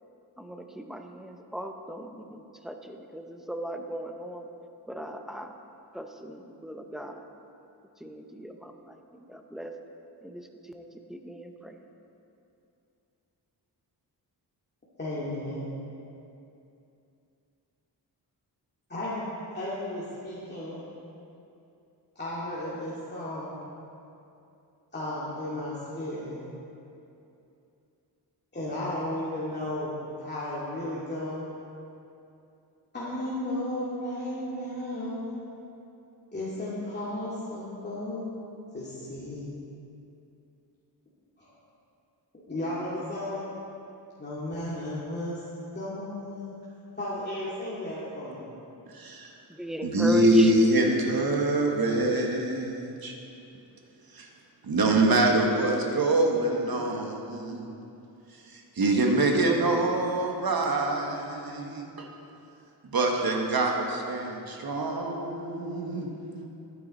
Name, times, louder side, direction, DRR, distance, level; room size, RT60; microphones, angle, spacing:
voice 1, 0.4-4.5 4.9-5.6 5.9-7.3 8.0-9.7 10.2-11.7 49.5-50.5, right 1 dB, ahead, 4 dB, 0.7 m, -38 dB
voice 2, 15.0-15.7 18.9-19.2 19.5-20.8 22.2-23.6 24.9-26.4 28.5-31.4 32.9-35.4 36.3-38.3 38.7-39.5 41.4-41.5 42.5-43.4 44.2-45.4 45.7-46.5 47.0-48.5, left 1 dB, 25° left, -9 dB, 2.2 m, -34 dB
voice 3, 48.9-49.3 49.8-53.1 54.1-54.3 54.6-57.7 58.5-62.1 62.8-66.1, right 2 dB, 55° right, 1 dB, 1.5 m, -25 dB
12.5 x 9.7 x 4.1 m, 2.7 s
wide cardioid pair, 90°, 42 cm